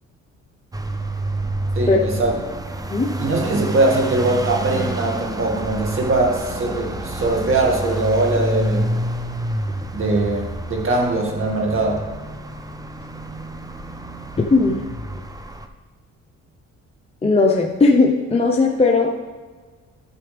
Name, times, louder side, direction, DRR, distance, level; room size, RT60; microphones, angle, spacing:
sound 1, 0.7-15.7, right 1 dB, 10° right, 0.7 m, -29 dB
voice 1, 1.8-2.3 3.2-8.9 9.9-12.0, right 2 dB, 45° right, 0 dB, 2.1 m, -21 dB
voice 2, 14.5-14.8 17.2-19.1, left 3 dB, 20° left, 0 dB, 0.9 m, -17 dB
12.5 x 6.8 x 3.4 m, 1.4 s
cardioid pair, 90°, 30 cm